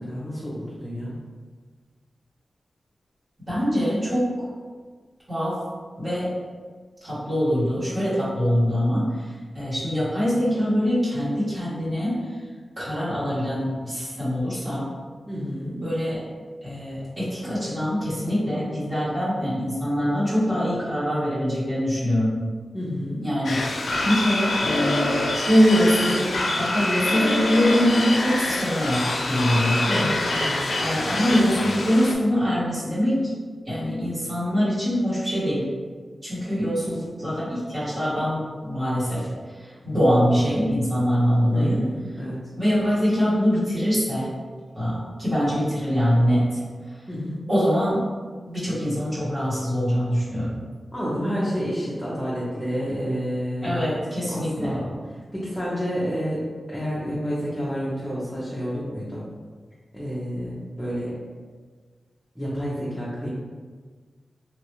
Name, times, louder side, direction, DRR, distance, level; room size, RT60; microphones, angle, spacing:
voice 1, 0.0-1.2 15.3-15.8 22.7-23.3 29.9-30.6 41.5-42.4 47.1-47.4 50.9-53.9 54.3-59.2 59.9-61.1 62.3-63.3, equal, 10° left, -9 dB, 0.6 m, -29 dB
voice 2, 3.5-4.5 5.3-5.6 6.0-6.3 7.0-9.1 9.5-12.2 12.8-14.9 15.8-16.2 16.6-22.4 23.2-29.8 30.8-33.3 33.7-35.7 36.2-39.3 39.6-41.8 42.6-44.3 44.8-46.6 47.5-48.0 48.5-50.6 53.6-54.9, equal, 35° right, -11 dB, 1.2 m, -23 dB
sound 1, 23.4-32.1, left 2 dB, 70° left, 0.4 m, -25 dB
3.1 x 2.4 x 2.9 m, 1.5 s
wide cardioid pair, 115°, 0 cm